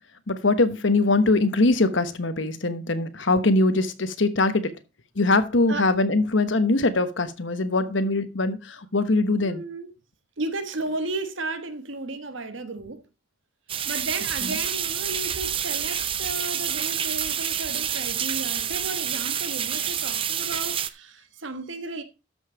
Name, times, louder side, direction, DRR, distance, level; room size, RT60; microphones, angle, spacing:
voice 1, 0.3-4.7 5.1-9.6 14.4-14.6, left 2 dB, 75° left, 1.1 m, -22 dB
voice 2, 9.4-9.9 10.4-13.0 13.8-22.0, right 2 dB, 75° right, 1.3 m, -34 dB
sound 1, 13.7-20.9, right 9 dB, 25° right, 0.5 m, -28 dB
12.5 x 5.5 x 4.7 m
head